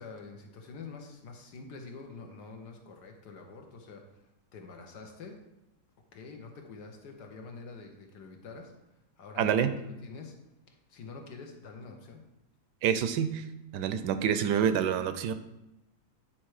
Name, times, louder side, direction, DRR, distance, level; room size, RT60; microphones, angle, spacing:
voice 1, 0.0-5.4 6.1-8.7 9.2-10.3 10.7-12.2, left 4 dB, 75° left, 3 dB, 1.6 m, -46 dB
voice 2, 9.4-9.7 12.8-13.4 13.7-15.3, right 8 dB, 80° right, 10 dB, 1.2 m, -27 dB
9.1 x 4.4 x 4.8 m, 0.90 s
omnidirectional pair, 1.8 m